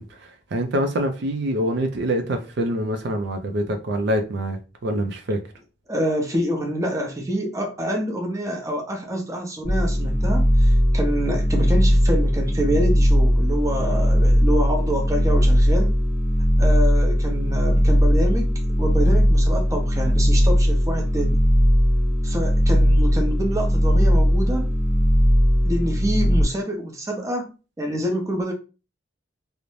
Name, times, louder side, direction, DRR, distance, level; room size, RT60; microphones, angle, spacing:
voice 1, 0.0-5.4, right 1 dB, 65° right, 0.4 m, -25 dB
voice 2, 5.9-16.0 16.6-21.4 22.2-24.7 25.6-28.5, equal, 15° right, 0.6 m, -27 dB
sound 1, 9.6-26.4, equal, 45° left, 1.0 m, -18 dB
2.5 x 2.0 x 3.0 m
head